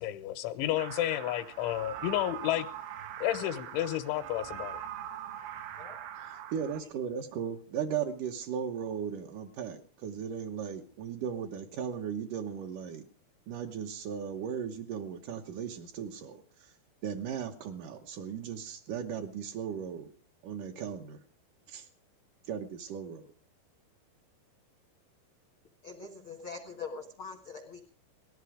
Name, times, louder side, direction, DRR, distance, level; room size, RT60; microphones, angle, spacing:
voice 1, 0.0-2.7 3.2-4.8, left 14 dB, 90° left, 7 dB, 3.4 m, -31 dB
sound 1, 0.8-6.8, right 10 dB, 90° right, 3.8 m, -42 dB
voice 2, 6.5-13.0 13.5-16.7 17.0-20.1 20.4-21.2 21.7-21.9 22.5-23.2, right 8 dB, 70° right, 3 dB, 2.0 m, -37 dB
voice 3, 25.8-27.8, left 4 dB, 65° left, 3 dB, 1.2 m, -43 dB
18.5 x 14.0 x 5.0 m, 0.43 s
omnidirectional pair, 5.2 m